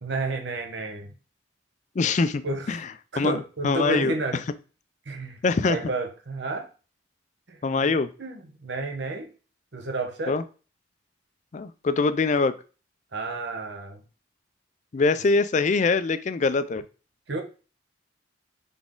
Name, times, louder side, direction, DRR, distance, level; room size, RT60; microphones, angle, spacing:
voice 1, 0.0-1.1 2.4-2.7 3.1-4.4 5.1-6.7 7.5-7.9 8.2-9.3 9.7-10.4 13.1-14.0 17.3-17.4, right 3 dB, 65° right, 3 dB, 1.0 m, -31 dB
voice 2, 2.0-2.4 2.7-2.8 3.2-4.1 5.4-5.8 7.6-8.1 10.3-10.4 11.5-12.5 14.9-16.8, left 4 dB, 40° left, 12 dB, 0.4 m, -23 dB
4.0 x 3.5 x 3.7 m, 0.35 s
head